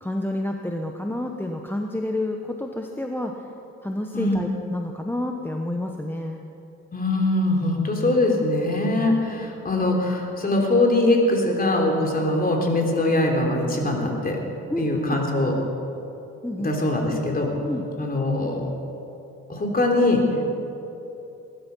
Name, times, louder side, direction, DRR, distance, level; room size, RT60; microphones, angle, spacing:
voice 1, 0.0-3.3 3.8-6.4 14.7-15.2 16.4-16.7 17.6-17.9, left 1 dB, 5° left, 2 dB, 1.0 m, -29 dB
voice 2, 4.1-4.4 6.9-14.4 14.8-15.5 16.6-17.5 18.0-18.7 19.5-20.2, left 2 dB, 30° left, 1 dB, 3.4 m, -22 dB
21.0 x 12.0 x 5.5 m, 2.9 s
cardioid pair, 90°, 30 cm